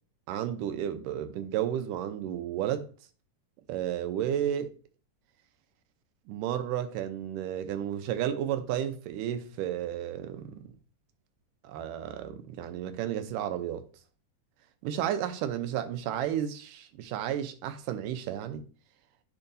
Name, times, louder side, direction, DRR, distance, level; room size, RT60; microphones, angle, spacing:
voice 1, 0.3-2.9 3.7-4.7 6.3-10.6 11.6-13.8 14.8-18.6, right 10 dB, 80° right, 2.3 m, -32 dB
10.0 x 4.8 x 2.6 m
omnidirectional pair, 3.8 m